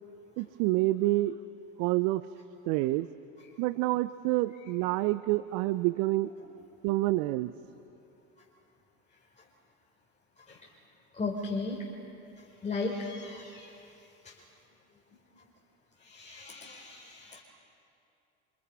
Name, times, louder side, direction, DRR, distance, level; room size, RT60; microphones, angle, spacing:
voice 1, 0.4-1.4 1.8-2.2 2.7-3.1 3.6-6.3 6.8-7.5, right 18 dB, 60° right, 15 dB, 0.7 m, -27 dB
voice 2, 11.2-11.9 12.6-13.8 14.2-14.3 16.0-17.4, left 3 dB, 20° left, -2 dB, 4.7 m, -36 dB
29.5 x 28.0 x 5.7 m, 2.8 s
hypercardioid pair, 75°, 36 cm